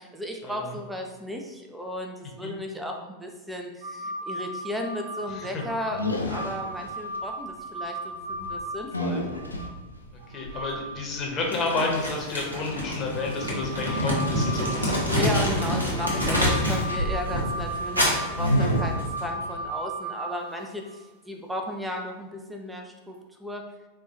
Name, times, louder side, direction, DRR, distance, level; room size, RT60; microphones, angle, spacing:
voice 1, 0.0-9.2 15.0-23.7, left 1 dB, 5° right, 2 dB, 0.3 m, -35 dB
sound 1, 3.8-9.7 10.2-11.0 11.3-11.4 12.5-21.0 23.1-23.2, right 1 dB, 50° right, 0.8 m, -36 dB
sound 2, 5.2-5.5 5.9-7.2 8.1-11.8 14.7-16.2 16.5-19.7, equal, 80° left, 0.4 m, -31 dB
voice 2, 5.3-5.6 10.3-15.0, left 3 dB, 30° left, -1 dB, 0.8 m, -30 dB
Crumpling crinkling, 11.5-16.9 17.2-19.2, equal, 85° right, 0.8 m, -27 dB
4.1 x 2.2 x 2.8 m, 1.2 s
figure-of-eight pair, 90°, 0 cm